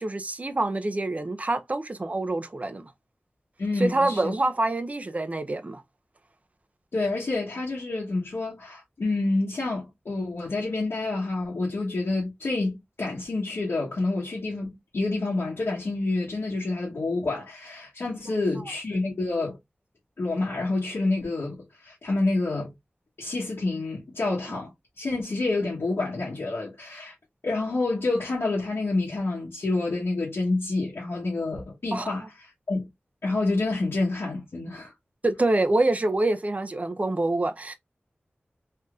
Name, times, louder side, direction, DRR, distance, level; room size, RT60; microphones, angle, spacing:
voice 1, 0.0-2.9 3.8-5.8 31.9-32.3 35.2-37.7, right 2 dB, 35° right, 0.5 m, -26 dB
voice 2, 3.6-4.3 6.9-19.6 20.2-21.5 21.8-22.7 23.2-24.7 25.0-27.1 27.4-32.9 33.2-34.9, left 2 dB, 85° left, 1.0 m, -28 dB
3.3 x 2.7 x 2.3 m
wide cardioid pair, 65°, 4 cm